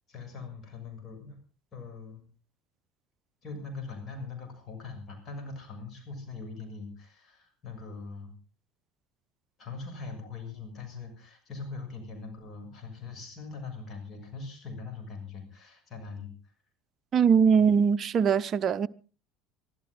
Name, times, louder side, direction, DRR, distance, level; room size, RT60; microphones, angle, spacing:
voice 1, 0.1-1.4 1.7-2.2 3.4-8.3 9.6-16.3 17.6-17.7, left 4 dB, 35° left, 6.6 m, -41 dB
voice 2, 17.1-18.9, right 6 dB, 35° right, 0.7 m, -22 dB
24.0 x 14.0 x 3.7 m
figure-of-eight pair, 70°, 0 cm